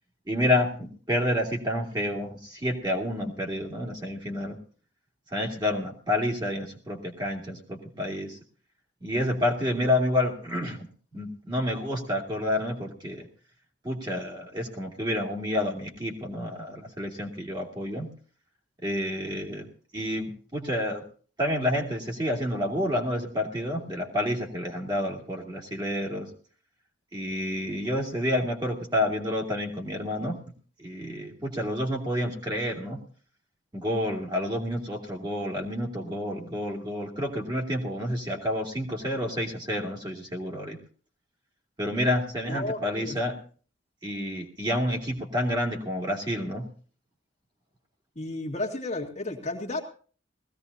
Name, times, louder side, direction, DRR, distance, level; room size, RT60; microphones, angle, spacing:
voice 1, 0.3-4.6 5.3-8.4 9.0-10.9 11.1-13.3 13.8-18.1 18.8-19.7 19.9-21.0 21.4-26.3 27.1-30.4 30.8-33.0 33.7-40.8 41.8-43.3 44.0-46.6, left 1 dB, 20° right, -1 dB, 2.4 m, -29 dB
voice 2, 42.5-43.1 48.1-49.8, left 2 dB, 35° left, 0 dB, 1.8 m, -32 dB
20.0 x 16.0 x 2.8 m, 0.41 s
head